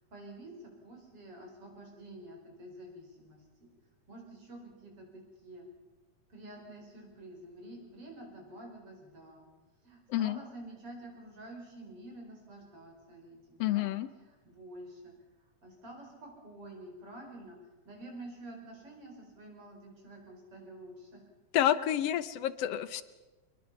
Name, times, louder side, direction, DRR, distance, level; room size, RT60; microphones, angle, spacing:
voice 1, 0.1-3.7 4.1-5.7 6.3-9.4 9.8-13.9 14.2-15.1 15.6-21.2 21.6-21.9, right 1 dB, 45° right, 1 dB, 5.9 m, -49 dB
voice 2, 13.6-14.1 21.5-23.0, left 12 dB, 70° left, 14 dB, 1.6 m, -29 dB
27.0 x 21.0 x 5.7 m, 1.2 s
omnidirectional pair, 3.5 m